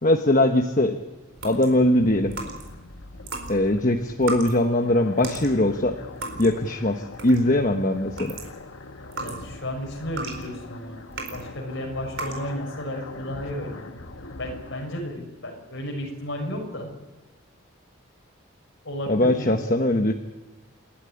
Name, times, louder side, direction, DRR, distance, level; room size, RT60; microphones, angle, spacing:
voice 1, 0.0-1.0 1.4-2.3 3.5-6.0 6.4-8.3 19.1-20.1, left 1 dB, 40° left, 5 dB, 1.1 m, -21 dB
sound 1, 1.0-15.0, left 2 dB, 75° left, 1.4 m, -42 dB
sound 2, 1.4-2.8 3.2-7.6 8.0-11.5 12.1-12.5, right 3 dB, 70° right, 4.5 m, -36 dB
voice 2, 9.2-11.0 11.3-14.0 14.4-16.9 18.8-19.6, equal, 60° left, 1 dB, 6.6 m, -33 dB
29.0 x 12.5 x 9.9 m, 1.2 s
head